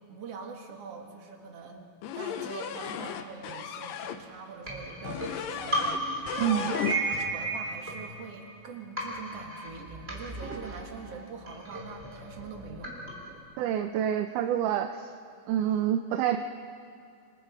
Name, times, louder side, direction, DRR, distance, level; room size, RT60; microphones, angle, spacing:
voice 1, 0.1-6.9 7.3-12.9, right 5 dB, 50° right, 2 dB, 2.7 m, -43 dB
sound 1, 2.0-4.2 5.0-6.0 6.3-7.3, left 9 dB, 75° left, 2.5 m, -35 dB
sound 2, 4.6-8.6 9.0-13.4, right 2 dB, 15° right, 3.3 m, -35 dB
voice 2, 6.4-6.7 13.6-15.1 15.5-16.4, right 10 dB, 75° right, 7 dB, 2.0 m, -27 dB
27.0 x 26.0 x 5.1 m, 2.4 s
omnidirectional pair, 4.2 m